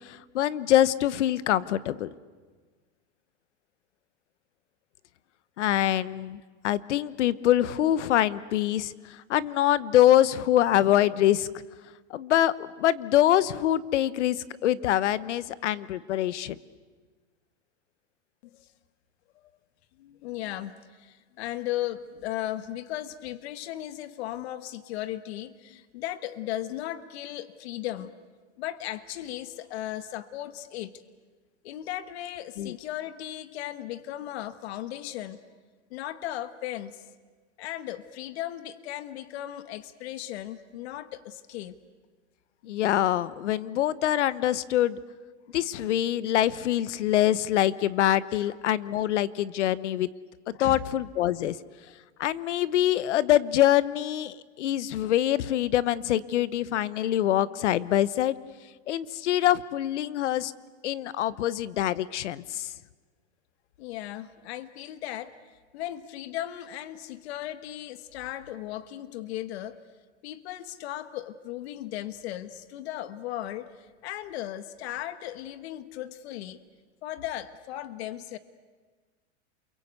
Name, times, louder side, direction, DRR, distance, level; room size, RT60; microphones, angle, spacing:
voice 1, 0.1-2.1 5.6-8.9 9.3-11.5 12.1-14.4 14.6-16.5 32.6-32.7 42.6-45.0 45.5-50.1 50.6-51.5 52.2-58.3 58.9-60.5 60.8-62.7, left 12 dB, 85° left, 17 dB, 1.1 m, -24 dB
voice 2, 20.0-28.1 28.6-30.9 31.6-35.4 35.9-37.1 37.6-41.7 48.3-48.5 50.5-50.8 63.8-65.3 65.7-69.8 70.2-76.6 77.0-78.4, left 13 dB, 65° left, 12 dB, 1.5 m, -36 dB
29.0 x 23.0 x 8.2 m, 1.4 s
supercardioid pair, 140°, 34 cm